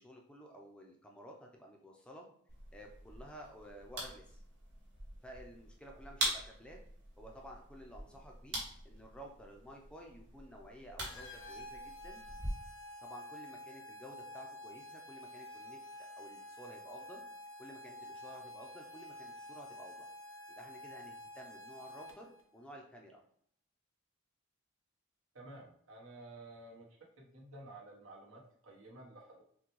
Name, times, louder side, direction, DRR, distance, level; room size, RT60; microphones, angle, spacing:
voice 1, 0.0-2.3 2.7-4.4 5.2-6.8 7.2-12.3 13.0-15.8 16.2-17.2 17.6-20.1 20.6-23.2, equal, 5° left, 0 dB, 0.5 m, -53 dB
sound 1, 2.5-12.5, right 1 dB, 55° right, 1.5 m, -44 dB
sound 2, 11.0-22.4, left 1 dB, 65° left, 0.8 m, -49 dB
voice 2, 25.3-26.9 27.2-29.4, right 2 dB, 75° right, -2 dB, 1.1 m, -52 dB
5.9 x 2.2 x 3.1 m, 0.64 s
head